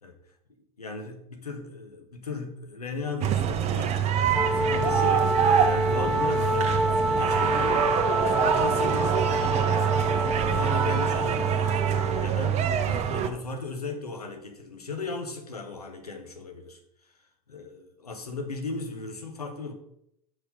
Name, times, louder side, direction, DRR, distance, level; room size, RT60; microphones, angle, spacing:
voice 1, 0.8-5.3 5.6-7.9 8.2-9.2 9.6-10.0 10.5-19.7, left 3 dB, 90° left, 4 dB, 1.3 m, -37 dB
sound 1, 3.2-13.3, right 8 dB, 35° right, 0.9 m, -25 dB
Wind instrument woodwind instrument, 4.3-12.3, equal, ahead, 0.7 m, -27 dB
6.4 x 5.8 x 5.4 m, 0.78 s
figure-of-eight pair, 85°, 19 cm